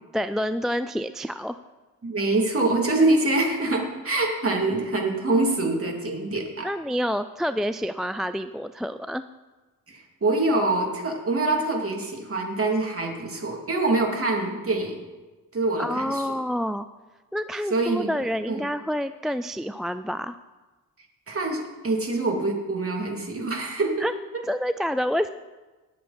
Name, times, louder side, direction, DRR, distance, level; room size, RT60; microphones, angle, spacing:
voice 1, 0.1-1.6 6.6-9.2 15.8-16.9 17.3-20.4 24.0-24.1 24.5-25.3, equal, ahead, 11 dB, 0.4 m, -28 dB
voice 2, 2.0-6.7 9.9-15.0 15.5-16.2 17.7-18.6 21.3-24.1 24.3-24.4, right 2 dB, 40° right, 1 dB, 3.0 m, -25 dB
19.0 x 7.4 x 4.4 m, 1.2 s
cardioid pair, 65°, 36 cm